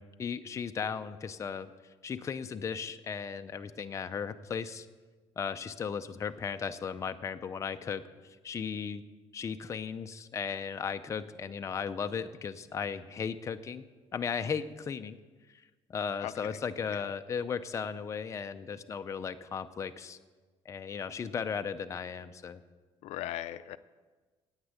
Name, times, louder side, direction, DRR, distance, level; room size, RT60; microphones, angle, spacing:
voice 1, 0.0-1.7 2.0-4.9 5.4-8.0 8.4-9.0 9.3-13.8 14.1-15.2 15.9-20.2 20.7-22.6, left 6 dB, 25° left, 8 dB, 0.5 m, -36 dB
voice 2, 16.2-16.6 16.9-17.1 23.0-23.8, left 13 dB, 80° left, 13 dB, 0.5 m, -39 dB
9.8 x 8.9 x 8.3 m, 1.3 s
cardioid pair, 155°, 11 cm